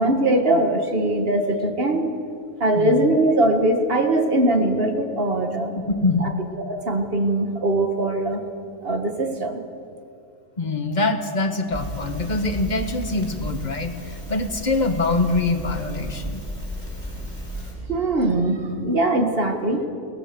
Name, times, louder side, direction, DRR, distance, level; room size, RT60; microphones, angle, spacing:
voice 1, 0.0-2.1 2.6-5.7 6.2-6.3 6.6-8.4 8.8-9.7 17.9-19.9, right 1 dB, 45° right, 5 dB, 1.9 m, -21 dB
voice 2, 5.7-6.3 10.6-16.4, left 3 dB, 35° left, 6 dB, 1.5 m, -24 dB
Crackle, 11.7-17.8, equal, 10° left, 5.6 m, -34 dB
22.0 x 18.0 x 6.9 m, 2.5 s
omnidirectional pair, 1.4 m